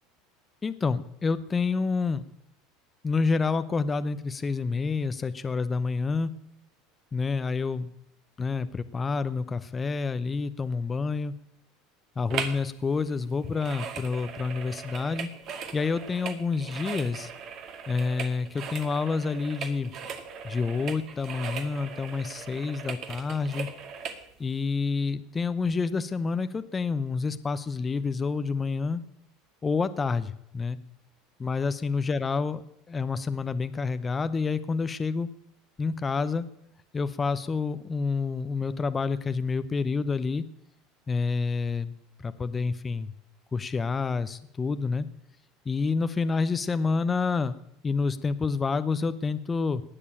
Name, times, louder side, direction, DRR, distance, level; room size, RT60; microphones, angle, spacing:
voice 1, 0.6-2.2 3.0-6.3 7.1-7.9 8.4-11.3 12.2-15.3 15.7-17.3 17.9-19.9 20.4-23.7 24.4-29.0 29.6-30.8 31.4-32.6 32.9-35.3 35.8-36.5 36.9-40.4 41.1-41.9 42.2-43.1 43.5-45.1 45.7-47.6 47.8-49.8, left 4 dB, 20° left, 11 dB, 0.7 m, -28 dB
sound 1, 12.3-12.7 12.9-24.2 24.7-24.8, right 6 dB, 45° right, 2.1 m, -39 dB
18.5 x 6.8 x 8.9 m, 0.77 s
supercardioid pair, 120°, 0 cm